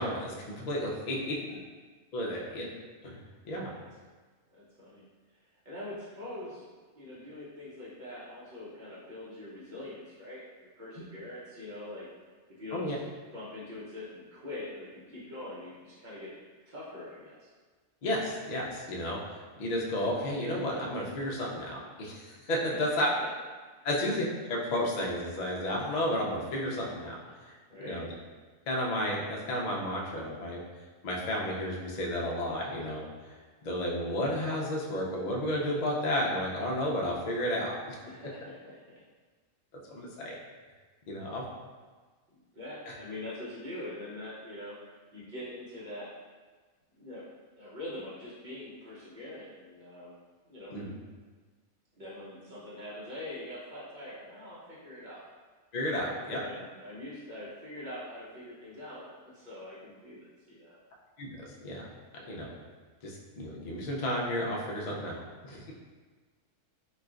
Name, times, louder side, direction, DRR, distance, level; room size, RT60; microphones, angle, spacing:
voice 1, 0.0-1.3 2.1-2.7 3.0-3.7 12.7-13.0 18.0-23.1 23.8-27.6 27.8-28.1 28.7-30.6 31.0-33.4 33.6-38.0 39.9-40.4 41.1-41.4 50.7-50.9 55.7-56.4 61.2-61.8 62.3-62.5 63.0-65.7, left 1 dB, 75° left, -3 dB, 0.3 m, -32 dB
voice 2, 4.5-5.1 5.4-6.7 7.0-12.1 12.6-13.0 13.3-16.3 16.7-17.5 22.7-23.3 23.8-23.9 27.7-28.0 38.0-39.0 42.3-44.8 45.1-46.1 46.9-47.2 47.6-50.1 50.5-50.8 52.0-55.2 55.9-59.0 59.3-60.8 62.1-62.4, left 1 dB, 45° right, -8 dB, 0.7 m, -43 dB
4.0 x 2.3 x 2.4 m, 1.4 s
omnidirectional pair, 1.4 m